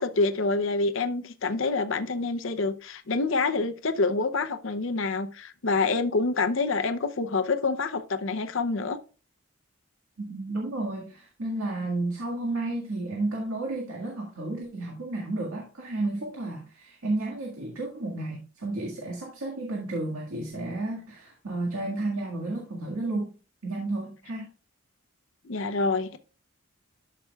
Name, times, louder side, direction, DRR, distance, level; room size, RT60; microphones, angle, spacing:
voice 1, 0.0-9.0 25.4-26.2, left 3 dB, 60° left, 0.7 m, -27 dB
voice 2, 10.2-23.3 23.6-24.5, right 2 dB, 75° right, 1.9 m, -32 dB
12.5 x 5.9 x 2.3 m
head